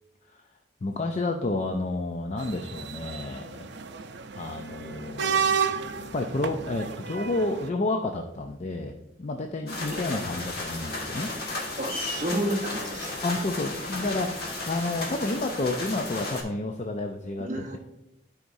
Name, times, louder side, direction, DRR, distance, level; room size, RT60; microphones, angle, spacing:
voice 1, 0.8-3.7 4.3-5.5 5.9-11.3 13.2-17.5, left 2 dB, 35° left, 4 dB, 0.4 m, -30 dB
sound 1, 2.4-7.7, right 6 dB, 70° right, 0.5 m, -31 dB
sound 2, 9.7-16.4, left 2 dB, 55° left, 1.7 m, -34 dB
voice 2, 11.8-13.1 17.4-17.8, right 1 dB, 40° right, 2 dB, 1.1 m, -31 dB
12.5 x 5.0 x 2.7 m, 0.88 s
head